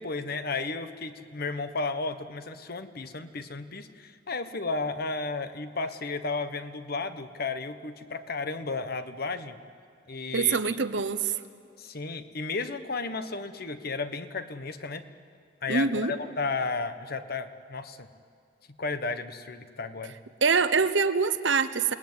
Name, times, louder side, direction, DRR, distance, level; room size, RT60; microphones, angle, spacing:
voice 1, 0.0-9.6 10.1-10.8 11.8-15.0 15.6-18.1 18.8-20.2, left 3 dB, 55° left, 10 dB, 1.2 m, -33 dB
voice 2, 10.3-11.3 15.7-16.1 20.4-21.9, right 5 dB, 70° right, 12 dB, 1.0 m, -24 dB
28.0 x 19.0 x 9.6 m, 2.3 s
head